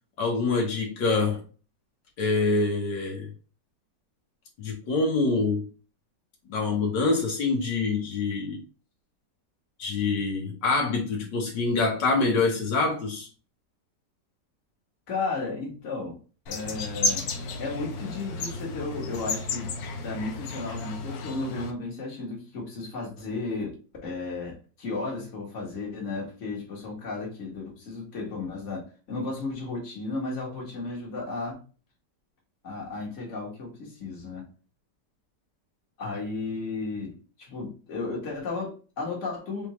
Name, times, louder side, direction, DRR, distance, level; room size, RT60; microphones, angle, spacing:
voice 1, 0.2-1.4 2.2-3.3 4.6-5.7 6.5-8.6 9.8-13.3, left 3 dB, 80° left, 1.8 m, -25 dB
voice 2, 15.1-16.2 16.5-17.3 17.6-19.7 20.0-31.6 32.6-34.5 36.0-39.7, left 3 dB, 45° left, 1.9 m, -34 dB
sound 1, 16.5-21.7, left 3 dB, 65° left, 1.1 m, -32 dB
4.4 x 3.5 x 3.1 m
omnidirectional pair, 1.9 m